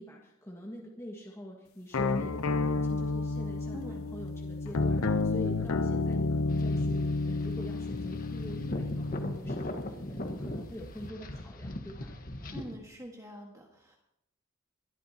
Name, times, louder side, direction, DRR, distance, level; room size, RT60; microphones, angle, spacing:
voice 1, 0.0-12.5, equal, 15° left, -2 dB, 1.7 m, -45 dB
sound 1, 1.9-9.4, left 3 dB, 70° left, 0.6 m, -30 dB
voice 2, 3.7-4.1 12.5-14.0, equal, 15° right, 0 dB, 1.5 m, -45 dB
sound 2, 6.5-12.8, left 1 dB, 40° left, 1.3 m, -39 dB
23.0 x 11.5 x 2.8 m, 0.81 s
head